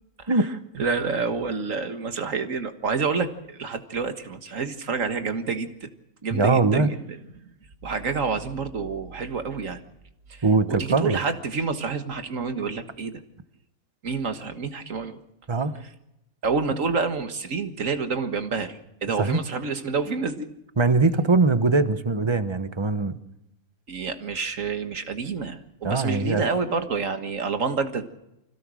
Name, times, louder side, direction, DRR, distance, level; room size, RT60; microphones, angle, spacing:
voice 1, 0.2-0.5 0.7-5.9 6.2-7.2 7.8-9.8 10.3-13.2 14.0-15.2 16.4-20.5 23.9-28.1, right 4 dB, 60° right, 8 dB, 1.9 m, -28 dB
voice 2, 6.3-6.9 10.4-11.2 15.5-15.7 19.2-19.4 20.8-23.2 25.8-26.4, right 3 dB, 20° right, 11 dB, 1.0 m, -21 dB
26.0 x 16.5 x 6.4 m, 0.87 s
omnidirectional pair, 1.6 m